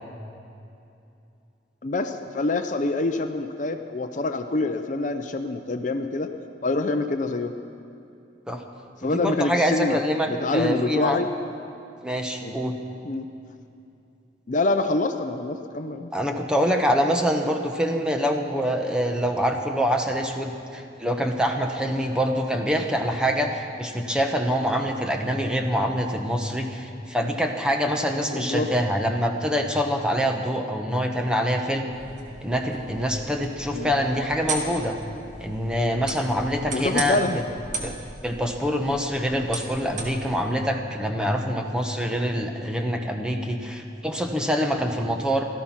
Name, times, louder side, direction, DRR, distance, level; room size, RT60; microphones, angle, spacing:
voice 1, 1.8-6.3 6.6-7.5 9.0-10.0 10.3-11.3 12.4-12.5 13.0-13.3 14.5-16.1 28.3-28.7 33.7-33.9 36.7-37.4 37.7-38.0 38.9-39.0, left 2 dB, 45° left, 7 dB, 0.6 m, -26 dB
voice 2, 9.0-11.2 12.0-12.8 16.1-23.5 23.8-31.9 32.4-35.0 35.4-37.4 37.8-37.9 38.2-45.5, equal, 5° right, 3 dB, 1.0 m, -25 dB
sound 1, 31.9-40.4, right 3 dB, 45° right, 1.7 m, -37 dB
17.5 x 13.5 x 5.8 m, 2.7 s
head